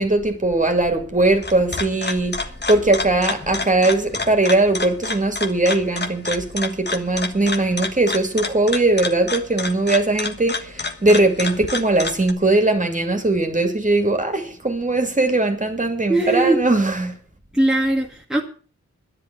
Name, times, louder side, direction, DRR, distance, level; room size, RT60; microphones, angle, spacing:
voice 1, 0.0-2.4 2.7-17.1, right 2 dB, 25° right, 2.6 m, -20 dB
sound 1, 1.2-12.3, left 3 dB, 35° left, 1.5 m, -29 dB
voice 2, 16.1-16.6 17.5-18.4, right 2 dB, ahead, 1.8 m, -19 dB
10.5 x 10.5 x 6.8 m
wide cardioid pair, 110°, 29 cm